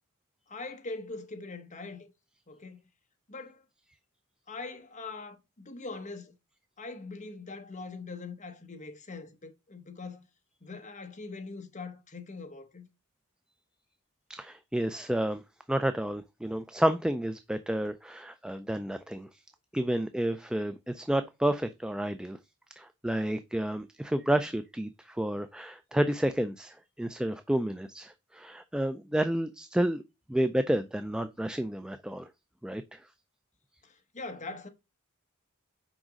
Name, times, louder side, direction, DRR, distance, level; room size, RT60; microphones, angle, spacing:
voice 1, 0.5-2.1 2.5-2.8 3.3-3.6 4.5-6.4 6.8-10.2 10.6-12.9 33.8-34.7, left 3 dB, 35° left, 1.2 m, -42 dB
voice 2, 14.3-15.4 15.7-19.3 19.7-22.4 22.8-30.0 30.3-32.3 32.6-33.0, right 1 dB, 5° right, 0.3 m, -30 dB
6.1 x 5.0 x 5.1 m
head